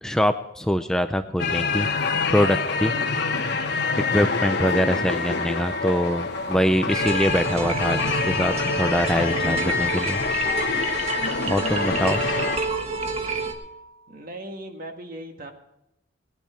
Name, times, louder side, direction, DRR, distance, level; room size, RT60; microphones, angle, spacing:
voice 1, 0.0-1.9 2.3-2.9 4.1-10.2 11.5-12.2, equal, 5° left, 8 dB, 0.4 m, -24 dB
sound 1, 1.4-12.6, left 4 dB, 60° left, 1.2 m, -26 dB
sound 2, 1.7-13.9, right 1 dB, 65° right, 4.1 m, -38 dB
sound 3, 6.9-13.5, right 4 dB, 35° right, 1.4 m, -30 dB
voice 2, 11.9-12.8 14.1-15.5, right 1 dB, 50° right, 4 dB, 1.7 m, -39 dB
18.0 x 10.0 x 4.5 m, 0.84 s
head